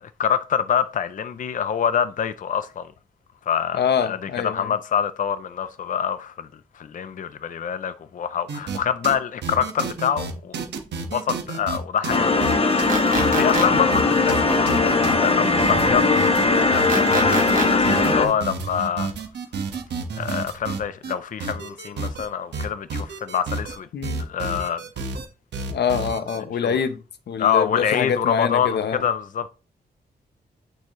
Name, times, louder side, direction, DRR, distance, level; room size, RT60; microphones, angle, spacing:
voice 1, 0.0-2.9 3.5-4.2 4.4-6.5 6.8-10.5 11.1-16.1 16.5-19.1 20.2-23.9 24.3-24.8 26.6-26.8 27.4-29.5, left 8 dB, 50° left, 0.5 m, -26 dB
voice 2, 3.7-4.7 23.9-24.2 25.7-27.0 27.3-29.1, left 7 dB, 80° left, 0.8 m, -25 dB
sound 1, 8.5-8.8 9.0-9.2 9.4-11.8 12.0-21.1 21.4-22.3 22.5-23.8 24.0-25.3 25.5-26.4, right 4 dB, 85° right, 1.4 m, -30 dB
sound 2, 12.1-18.3, left 3 dB, 35° left, 1.1 m, -19 dB
sound 3, 12.9-13.7 16.9-17.7, right 3 dB, 50° right, 2.5 m, -26 dB
9.1 x 4.7 x 3.1 m
wide cardioid pair, 125°, 17 cm